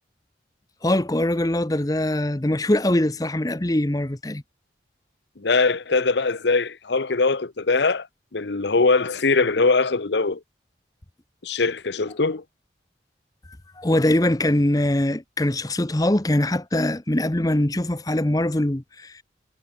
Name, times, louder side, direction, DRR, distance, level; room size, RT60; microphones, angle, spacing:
voice 1, 0.8-4.4 13.8-19.2, left 1 dB, 20° left, 0.9 m, -22 dB
voice 2, 5.4-8.1 8.3-10.4 11.4-12.4, left 3 dB, 80° left, 0.9 m, -21 dB
head